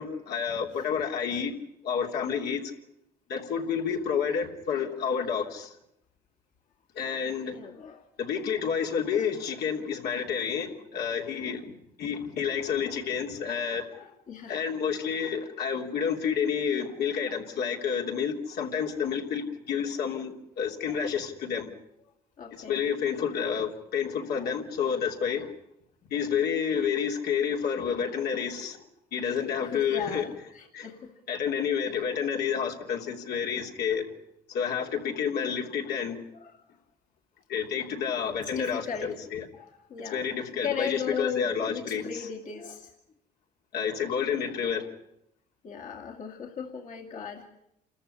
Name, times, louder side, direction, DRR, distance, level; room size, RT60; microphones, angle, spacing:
voice 1, 0.0-1.6 1.8-2.7 3.3-5.7 6.9-7.6 8.2-11.7 12.0-13.9 14.5-21.7 22.5-25.5 26.1-28.8 29.1-30.3 30.7-30.9 31.3-34.0 34.5-36.2 37.5-39.5 40.1-42.2 43.7-44.9, left 7 dB, 70° left, 1 dB, 3.3 m, -29 dB
voice 2, 7.5-8.0 14.0-14.6 17.2-17.4 18.8-19.0 20.9-21.0 22.4-22.9 24.3-24.5 28.1-28.2 29.3-31.1 36.4-36.6 38.6-39.1 39.5-40.3 40.6-42.9 45.6-47.5, left 6 dB, 50° left, 1 dB, 2.4 m, -37 dB
28.0 x 14.0 x 9.9 m, 0.78 s
cardioid pair, 110°, 17 cm